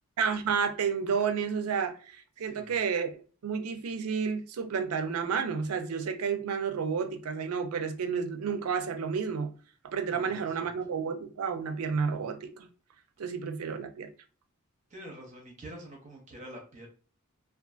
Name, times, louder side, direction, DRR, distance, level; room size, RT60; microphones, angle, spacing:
voice 1, 0.2-2.0 2.4-9.5 9.9-12.7 13.2-14.1, right 6 dB, 80° right, 0.4 m, -31 dB
voice 2, 2.4-2.8 10.1-10.7 14.9-16.9, right 1 dB, 35° right, 0.6 m, -47 dB
2.5 x 2.4 x 2.3 m
head